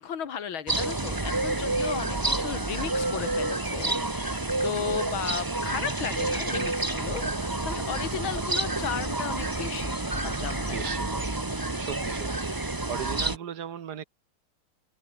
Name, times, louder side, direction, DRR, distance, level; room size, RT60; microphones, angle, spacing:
voice 1, 0.0-11.0, left 8 dB, 80° left, 2.7 m, -35 dB
sound 1, 0.7-13.4, right 2 dB, 15° right, 1.1 m, -29 dB
voice 2, 2.1-2.5 7.6-8.0 10.6-14.0, right 9 dB, 55° right, 1.6 m, -39 dB
omnidirectional pair, 2.2 m